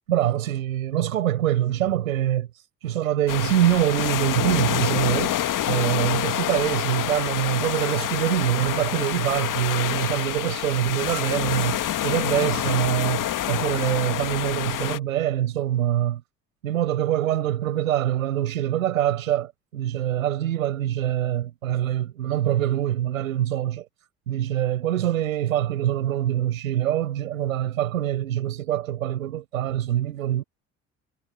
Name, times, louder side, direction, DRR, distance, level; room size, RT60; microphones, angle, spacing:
voice 1, 0.1-2.5 2.8-5.3 5.7-16.2 16.6-23.9 24.3-30.4, right 12 dB, 80° right, 6.9 m, -24 dB
sound 1, 3.3-15.0, left 12 dB, 50° left, 2.0 m, -27 dB
figure-of-eight pair, 45°, 41 cm